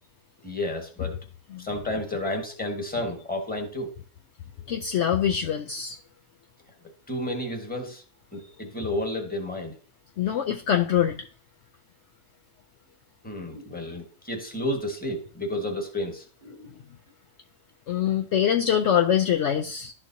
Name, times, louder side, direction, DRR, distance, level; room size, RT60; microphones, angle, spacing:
voice 1, 0.4-1.3 1.6-3.9 7.1-8.0 8.3-9.7 10.3-10.4 13.2-16.7, left 1 dB, 5° left, 3 dB, 1.2 m, -31 dB
voice 2, 4.7-6.0 10.2-11.2 17.9-19.9, left 9 dB, 65° left, 5 dB, 0.8 m, -24 dB
12.5 x 4.5 x 2.7 m, 0.39 s
omnidirectional pair, 1.5 m